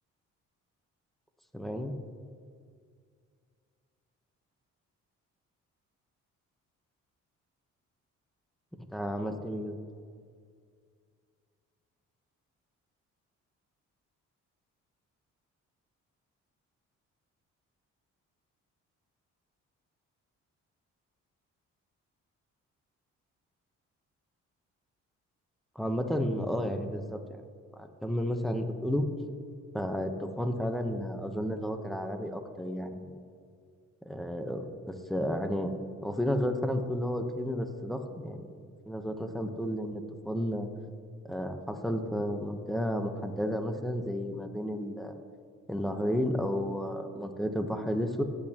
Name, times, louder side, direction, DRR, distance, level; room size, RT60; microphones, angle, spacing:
voice 1, 1.5-1.9 8.9-9.8 25.7-27.2 27.8-29.1 29.7-33.1 34.0-40.7 41.2-45.2 45.7-48.2, equal, ahead, 6 dB, 0.9 m, -32 dB
15.5 x 8.6 x 2.9 m, 2.1 s
cardioid pair, 90°, 30 cm